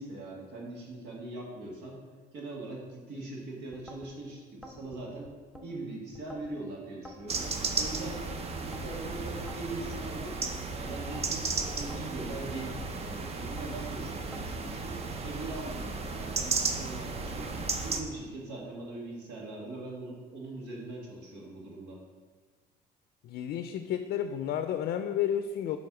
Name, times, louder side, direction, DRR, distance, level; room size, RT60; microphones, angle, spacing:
voice 1, 0.0-2.0 2.3-5.3 5.6-7.5 7.8-8.2 8.5-10.4 10.7-17.5 17.8-22.0, right 2 dB, 85° right, -2 dB, 1.8 m, -41 dB
sound 1, 3.7-4.1 4.6-5.7 6.1-6.6 7.0-8.1 8.6-9.0 9.5-10.5 11.0-11.4 11.9-13.0 13.4-13.8 14.3-14.8, left 1 dB, ahead, 0.7 m, -49 dB
sound 2, 7.3-18.0, right 4 dB, 40° right, 0.6 m, -34 dB
voice 2, 23.2-25.8, left 9 dB, 65° left, 8 dB, 0.4 m, -31 dB
6.8 x 3.3 x 6.0 m, 1.5 s
cardioid pair, 110°, 17 cm